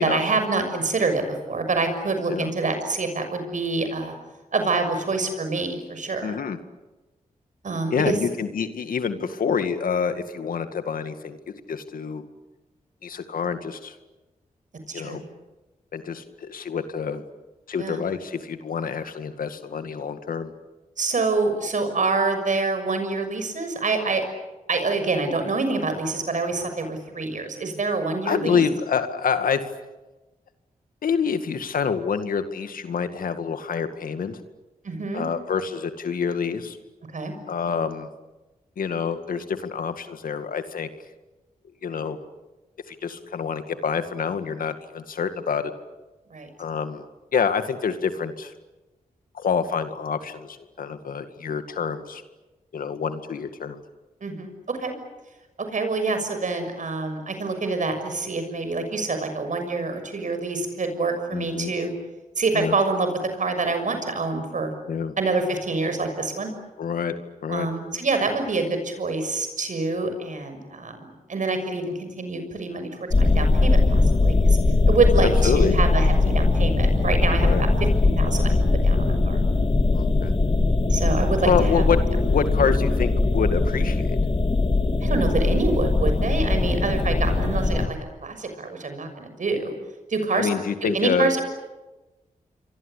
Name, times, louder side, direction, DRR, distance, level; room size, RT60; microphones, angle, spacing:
voice 1, 0.0-4.1 4.5-6.4 7.6-8.2 14.9-15.2 17.8-18.0 21.0-24.2 24.7-28.6 34.8-35.3 37.1-37.3 46.3-46.5 54.2-54.9 55.7-61.9 62.4-63.1 63.3-64.7 65.2-66.5 67.5-74.6 74.9-77.7 78.0-79.4 80.9-81.8 85.0-89.7 90.1-90.5 90.8-91.4, right 3 dB, 65° right, 7 dB, 6.4 m, -26 dB
voice 2, 6.2-6.6 7.9-11.4 11.7-12.2 13.0-13.9 14.9-15.2 15.9-17.2 17.7-20.5 28.2-29.6 31.0-34.4 35.1-36.8 37.5-38.1 38.8-40.9 41.8-42.2 42.9-45.7 46.6-47.0 47.3-48.5 49.3-52.2 52.7-53.8 61.3-61.7 62.5-62.8 64.9-65.2 66.8-67.1 67.4-67.7 75.2-75.8 77.4-77.6 79.9-80.3 81.4-84.2 90.3-91.3, left 6 dB, 85° left, 9 dB, 2.0 m, -27 dB
sound 1, 73.1-87.9, left 3 dB, 40° left, 2.8 m, -20 dB
28.5 x 23.5 x 8.4 m, 1.1 s
cardioid pair, 55°, 14 cm